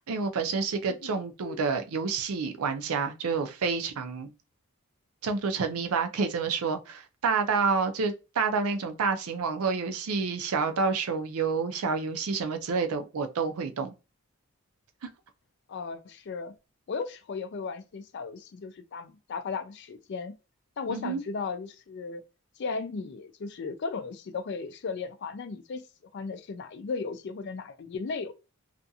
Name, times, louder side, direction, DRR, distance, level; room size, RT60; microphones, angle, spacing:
voice 1, 0.0-4.3 5.2-13.9 15.0-15.1 20.9-21.2, right 5 dB, 80° right, 0.5 m, -29 dB
voice 2, 15.7-16.5 16.9-20.3 20.8-22.2 22.6-25.8 26.1-28.3, left 4 dB, 50° left, 0.3 m, -36 dB
2.5 x 2.3 x 2.6 m
head